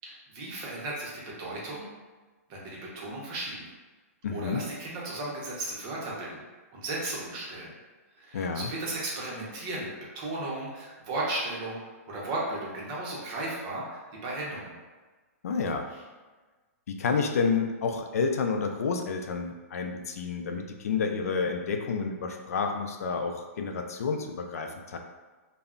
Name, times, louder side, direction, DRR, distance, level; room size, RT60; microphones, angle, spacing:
voice 1, 0.0-1.9 2.5-3.7 4.3-6.4 6.7-7.7 8.2-14.8, right 2 dB, 25° right, -4 dB, 0.6 m, -35 dB
voice 2, 4.2-4.6 8.3-8.7 15.4-15.9 16.9-25.0, left 5 dB, 75° left, 4 dB, 0.4 m, -30 dB
2.2 x 2.0 x 3.6 m, 1.3 s
hypercardioid pair, 165°, 8 cm